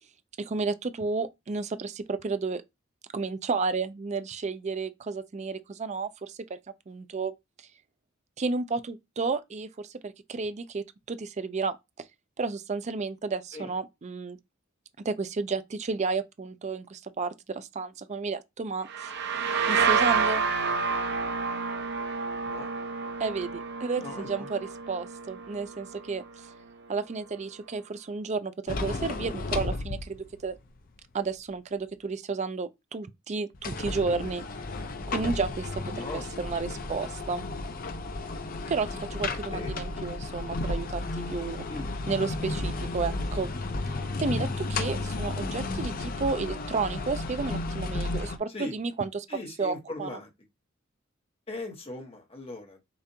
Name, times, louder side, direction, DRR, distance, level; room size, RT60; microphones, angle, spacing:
voice 1, 0.4-2.6 3.1-6.6 6.9-7.3 8.4-12.1 12.4-14.4 15.0-19.1 19.7-20.4 23.2-24.6 24.9-26.5 26.9-30.5 31.1-34.4 35.1-37.5 38.7-41.6 42.1-43.5 44.2-49.3 49.6-50.1, right 4 dB, 35° right, 0.4 m, -32 dB
sound 1, 18.9-26.4, right 5 dB, 60° right, 0.8 m, -29 dB
voice 2, 24.0-24.5 35.9-36.2 36.7-37.1 39.5-39.7 41.7-42.0 48.5-48.8 49.3-50.3 51.5-52.9, left 2 dB, 30° left, 1.2 m, -39 dB
sound 2, 28.7-30.5 30.9-31.0 33.5-48.4, left 2 dB, 45° left, 0.6 m, -33 dB
6.8 x 2.5 x 2.8 m
head